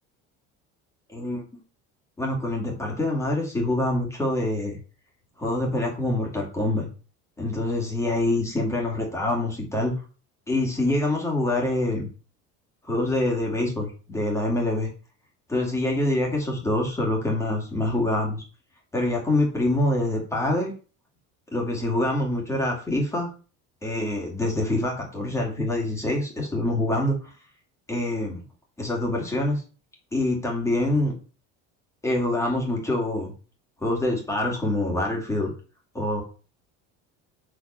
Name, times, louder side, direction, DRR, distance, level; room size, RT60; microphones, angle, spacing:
voice 1, 1.1-1.4 2.2-4.8 5.4-6.9 7.4-9.9 10.5-12.1 12.8-14.9 15.5-18.4 18.9-20.7 21.5-23.3 23.8-27.3 27.9-28.4 28.8-29.6 30.1-31.1 32.0-33.3 33.8-35.5 35.9-36.2, left 1 dB, 10° left, -1 dB, 2.4 m, -25 dB
6.4 x 5.0 x 5.5 m, 0.36 s
cardioid pair, 175°, 32 cm